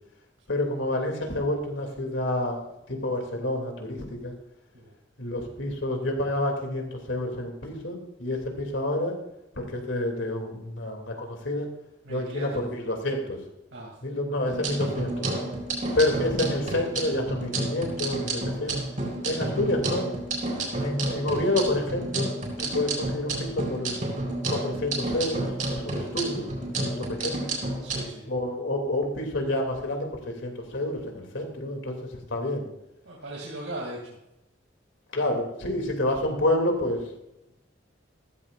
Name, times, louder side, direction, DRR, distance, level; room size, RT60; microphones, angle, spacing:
voice 1, 0.5-2.6 2.9-4.3 5.2-9.2 9.6-11.7 12.1-13.4 14.0-15.3 15.9-18.7 19.2-20.1 20.7-22.3 22.6-24.0 24.5-27.5 28.3-32.7 35.1-37.0, left 1 dB, 80° left, 2 dB, 2.9 m, -28 dB
voice 2, 12.0-12.6 13.7-14.0 27.8-28.3 33.0-34.0, right 1 dB, 80° right, -3 dB, 2.9 m, -38 dB
sound 1, 14.5-28.0, right 2 dB, 40° right, 4.0 m, -31 dB
15.0 x 14.5 x 2.6 m, 0.88 s
head